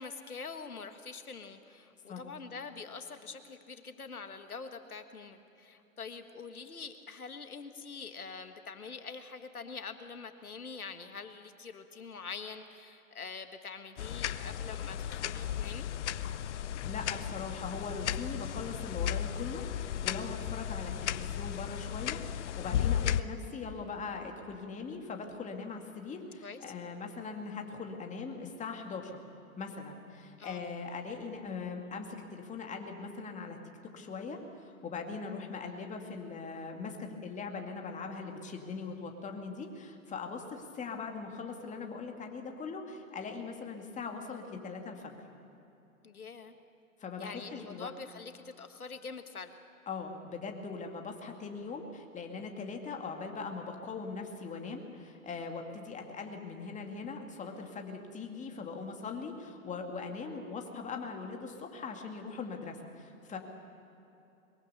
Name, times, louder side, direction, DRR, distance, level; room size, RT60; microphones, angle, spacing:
voice 1, 0.0-15.9 26.4-26.6 30.4-30.6 46.0-46.6 47.2-49.6, left 5 dB, 85° left, 8 dB, 1.8 m, -45 dB
sound 1, 14.0-23.2, left 10 dB, 55° left, 0.8 m, -35 dB
voice 2, 16.8-29.2 29.6-33.6 33.9-45.2 47.0-47.9 49.9-63.4, left 4 dB, 15° left, 3 dB, 2.3 m, -41 dB
22.5 x 22.5 x 6.9 m, 2.9 s
figure-of-eight pair, 115°, 43 cm